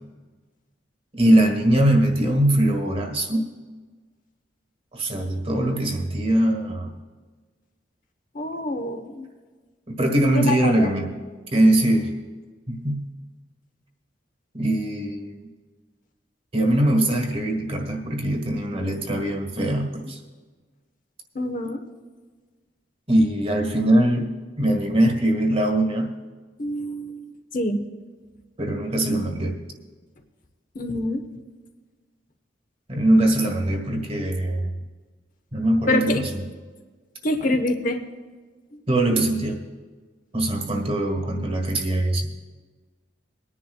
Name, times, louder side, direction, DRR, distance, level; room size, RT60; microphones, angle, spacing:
voice 1, 1.1-3.5 4.9-6.9 10.0-11.1 11.5-12.1 12.7-13.1 14.5-15.5 16.5-20.2 23.1-24.3 24.6-26.1 28.6-29.5 32.9-34.7 35.5-36.4 38.9-39.6 40.3-42.3, right 1 dB, 35° right, 3 dB, 1.5 m, -21 dB
voice 2, 8.3-9.3 10.3-10.9 21.3-21.8 26.6-27.8 30.7-31.3 35.9-36.2 37.2-38.0, left 1 dB, 45° left, 6 dB, 1.1 m, -26 dB
23.0 x 10.0 x 2.3 m, 1.4 s
head